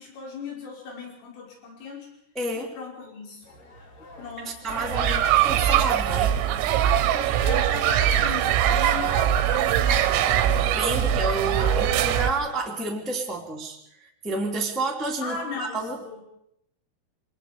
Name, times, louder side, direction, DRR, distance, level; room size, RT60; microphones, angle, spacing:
voice 1, 0.0-2.1 2.5-3.5 4.2-5.2 7.1-12.1 15.2-16.2, left 4 dB, 70° left, 0 dB, 7.8 m, -38 dB
voice 2, 2.3-2.7 4.4-6.4 10.7-16.0, right 2 dB, ahead, -1 dB, 1.9 m, -30 dB
sound 1, 3.4-12.5, left 2 dB, 35° left, 5.1 m, -48 dB
sound 2, 4.7-12.3, right 10 dB, 85° right, 3.8 m, -22 dB
25.5 x 20.0 x 5.2 m, 0.75 s
omnidirectional pair, 5.9 m